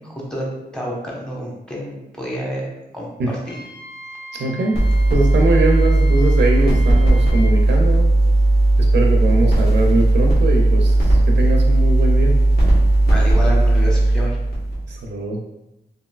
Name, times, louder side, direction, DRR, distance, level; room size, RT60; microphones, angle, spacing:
voice 1, 0.0-2.6 2.9-3.1 3.4-3.6 13.0-14.4, equal, 5° left, -4 dB, 1.0 m, -29 dB
Wind instrument woodwind instrument, 3.5-7.6, equal, 75° left, 0.5 m, -39 dB
voice 2, 4.4-4.8 5.1-8.1 8.8-12.4 14.9-15.4, right 2 dB, 75° right, 0 dB, 0.4 m, -22 dB
sound 1, 4.7-15.0, right 1 dB, 55° left, 1.2 m, -16 dB
3.0 x 2.6 x 2.3 m, 0.91 s
cardioid pair, 55°, 18 cm